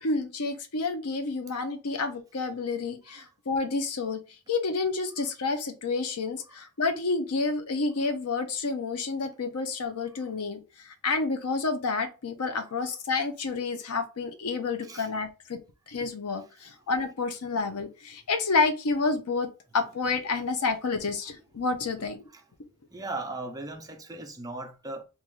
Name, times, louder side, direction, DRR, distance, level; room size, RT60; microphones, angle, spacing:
voice 1, 0.0-4.2 4.5-15.6 15.9-22.2, left 4 dB, 85° left, 0.6 m, -29 dB
voice 2, 22.9-25.0, right 2 dB, 15° right, 0.5 m, -38 dB
3.0 x 2.5 x 3.8 m
head